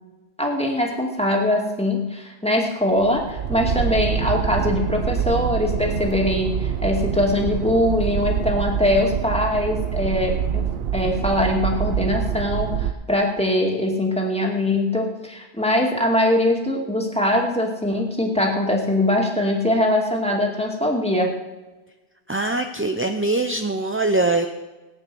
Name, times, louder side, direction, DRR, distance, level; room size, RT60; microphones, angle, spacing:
voice 1, 0.4-10.6 10.9-21.3, left 1 dB, 5° left, -1 dB, 2.4 m, -22 dB
sound 1, 3.0-12.9, right 8 dB, 65° right, 1.0 m, -25 dB
voice 2, 22.3-24.5, right 2 dB, 15° right, 5 dB, 0.6 m, -22 dB
18.5 x 9.5 x 6.3 m, 1.2 s
omnidirectional pair, 1.1 m